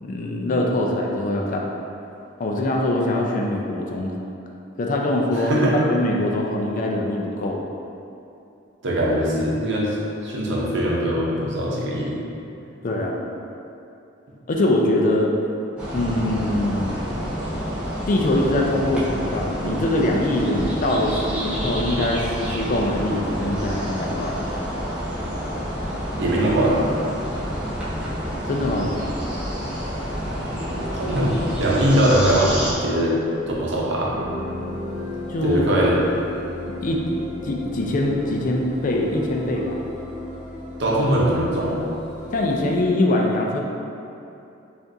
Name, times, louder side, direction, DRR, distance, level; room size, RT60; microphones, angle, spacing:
voice 1, 0.0-1.7 2.4-4.2 4.8-7.6 12.8-13.2 14.5-15.3 15.9-17.0 18.1-24.4 28.5-28.9 35.3-35.6 36.8-37.0 37.4-39.8 42.3-43.6, left 1 dB, 45° left, 0 dB, 0.4 m, -23 dB
voice 2, 5.4-5.8 8.8-10.0 10.2-12.2 26.2-26.9 30.9-33.1 33.6-34.1 35.4-36.0 40.8-41.8, right 1 dB, 65° right, -4 dB, 0.7 m, -21 dB
sound 1, 15.8-32.7, equal, 5° right, 0.9 m, -28 dB
sound 2, 29.1-42.9, left 1 dB, 25° right, 1.3 m, -37 dB
5.1 x 2.5 x 2.6 m, 2.7 s
head